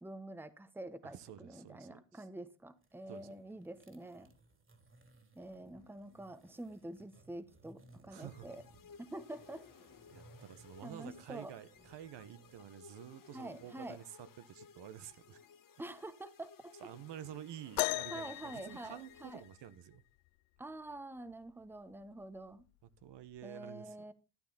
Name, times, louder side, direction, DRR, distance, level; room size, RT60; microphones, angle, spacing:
voice 1, 0.0-4.3 5.4-8.6 9.0-9.6 10.8-11.6 13.3-14.0 15.8-16.7 18.1-19.4 20.6-22.6 23.4-24.1, right 1 dB, 5° right, 1.2 m, -47 dB
voice 2, 1.0-2.3 3.1-3.3 8.1-8.5 10.1-15.4 16.8-20.0 23.0-24.1, right 11 dB, 55° right, 1.3 m, -50 dB
sound 1, 2.7-12.6, right 2 dB, 25° right, 2.8 m, -63 dB
sound 2, 8.1-20.0, left 6 dB, 40° left, 1.5 m, -59 dB
sound 3, 17.8-19.7 21.3-21.4 22.2-22.4 23.4-23.5, left 23 dB, 65° left, 0.5 m, -38 dB
13.0 x 9.7 x 4.2 m
supercardioid pair, 75°, 49 cm